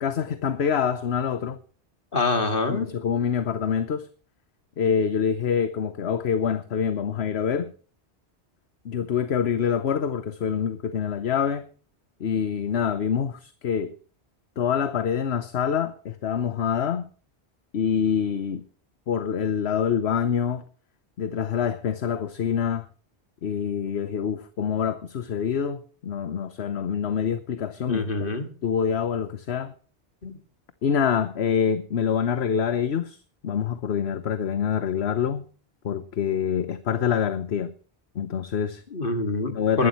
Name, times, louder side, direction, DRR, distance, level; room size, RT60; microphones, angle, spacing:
voice 1, 0.0-1.6 2.7-4.1 4.8-7.7 8.8-11.7 12.2-13.9 14.6-17.0 17.7-18.6 19.1-20.6 21.2-22.9 23.4-29.7 30.8-35.4 35.8-37.7 38.1-38.8 39.5-39.9, left 7 dB, 70° left, 1.2 m, -26 dB
voice 2, 2.1-2.9 27.9-28.5 30.2-30.4 38.9-39.9, left 3 dB, 55° left, 2.3 m, -26 dB
21.5 x 11.5 x 3.1 m
omnidirectional pair, 1.1 m